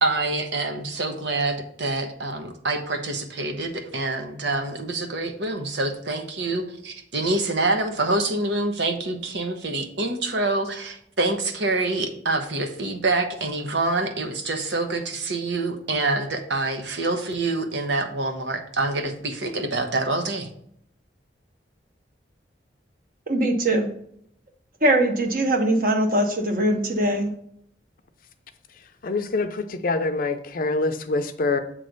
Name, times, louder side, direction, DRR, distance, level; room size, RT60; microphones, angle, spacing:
voice 1, 0.0-20.5, right 2 dB, 80° right, 5 dB, 1.0 m, -26 dB
voice 2, 23.3-23.9 24.8-27.3, right 1 dB, 50° right, 3 dB, 1.1 m, -21 dB
voice 3, 29.0-31.6, left 3 dB, 50° left, 7 dB, 0.5 m, -25 dB
7.6 x 3.2 x 5.2 m, 0.69 s
head